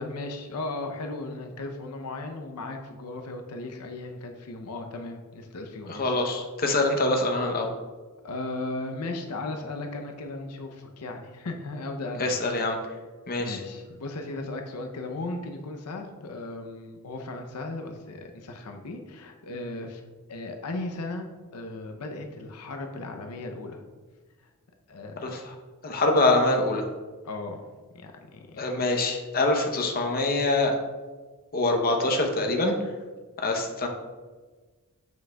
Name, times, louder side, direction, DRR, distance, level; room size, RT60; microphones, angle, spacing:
voice 1, 0.0-6.2 8.2-12.4 13.4-20.0 20.3-23.8 24.9-25.3 27.2-27.6 27.9-28.6, left 2 dB, 90° left, 4 dB, 0.6 m, -36 dB
voice 2, 5.9-7.7 12.2-12.8 13.3-13.6 25.2-25.4 25.8-26.8 28.6-30.7 31.5-32.7 33.4-33.9, left 2 dB, 40° left, 2 dB, 0.7 m, -24 dB
7.2 x 6.1 x 2.2 m, 1.4 s
head